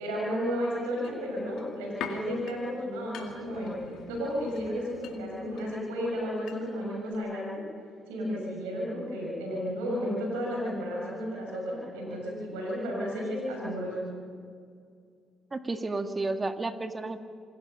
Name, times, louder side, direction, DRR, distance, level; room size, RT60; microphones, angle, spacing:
voice 1, 0.0-3.8 4.1-7.5 8.1-14.0, equal, 85° right, -3 dB, 7.1 m, -33 dB
sound 1, 1.0-6.9 7.1-7.2, left 7 dB, 70° left, 2.1 m, -45 dB
voice 2, 15.5-17.2, right 2 dB, 30° right, 7 dB, 2.0 m, -32 dB
27.0 x 20.0 x 5.6 m, 2.2 s
hypercardioid pair, 50°, 0 cm